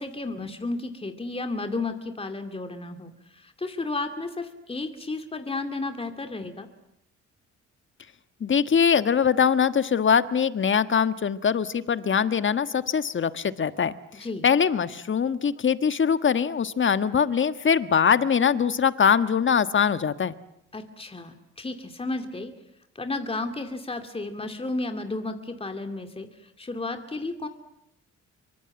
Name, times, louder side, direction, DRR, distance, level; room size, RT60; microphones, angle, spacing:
voice 1, 0.0-6.7 14.2-14.5 20.7-22.5 22.9-27.5, left 2 dB, 20° left, 7 dB, 2.6 m, -33 dB
voice 2, 8.4-20.3, left 7 dB, 40° left, 12 dB, 1.5 m, -22 dB
25.5 x 24.5 x 9.0 m, 0.82 s
cardioid pair, 90°, 30 cm